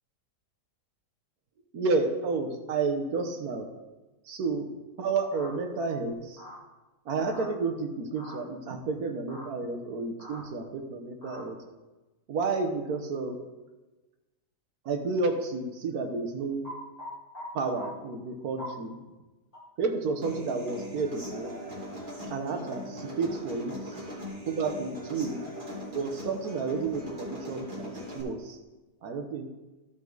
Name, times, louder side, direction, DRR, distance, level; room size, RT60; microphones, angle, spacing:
voice 1, 1.7-3.7 4.3-4.7 5.0-6.4 7.1-11.6 12.3-13.4 14.8-16.6 17.5-18.9 19.8-21.5 22.3-23.9 24.5-25.4 25.9-28.6 29.0-29.5, right 4 dB, 65° right, 5 dB, 1.5 m, -31 dB
sound 1, 5.3-5.5 6.4-6.6 7.3-7.5 8.2-8.4 9.3-9.5 10.2-10.4 11.2-11.4 16.6-17.5 17.8-17.9 18.6-18.7 19.5-19.6, equal, 25° left, 2.5 m, -42 dB
Human voice / Acoustic guitar, 20.2-28.2, equal, 30° right, 2.6 m, -40 dB
14.0 x 5.9 x 3.9 m, 1.1 s
omnidirectional pair, 1.7 m